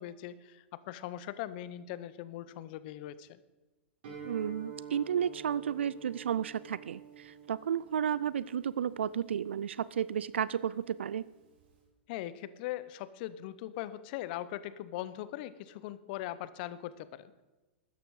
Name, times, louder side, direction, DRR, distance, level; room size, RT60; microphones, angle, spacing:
voice 1, 0.0-3.4 12.1-17.3, left 13 dB, 55° left, 16 dB, 0.8 m, -40 dB
Guitar, 4.0-11.8, right 7 dB, 65° right, 4.5 m, -50 dB
voice 2, 4.2-11.2, right 9 dB, 85° right, 19 dB, 0.4 m, -32 dB
13.0 x 9.5 x 4.8 m, 1.2 s
hypercardioid pair, 115°, 6 cm